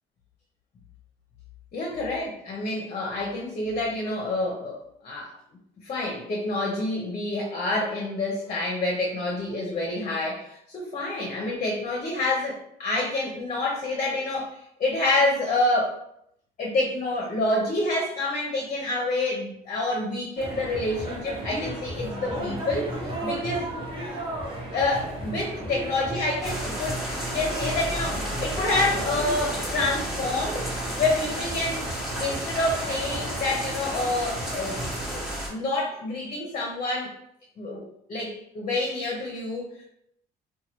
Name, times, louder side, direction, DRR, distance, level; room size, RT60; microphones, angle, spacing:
voice 1, 1.7-4.8 5.0-5.3 5.8-16.0 16.6-23.7 24.7-27.0 27.3-30.7 31.0-31.9 32.2-34.8 35.1-37.1 37.6-37.8 38.1-39.8, left 2 dB, 40° left, -2 dB, 0.7 m, -28 dB
sound 1, 20.4-35.1, right 1 dB, 30° right, 0.9 m, -35 dB
sound 2, 26.4-35.5, equal, 5° right, 1.0 m, -32 dB
3.0 x 2.2 x 2.9 m, 0.73 s
cardioid pair, 110°, 17 cm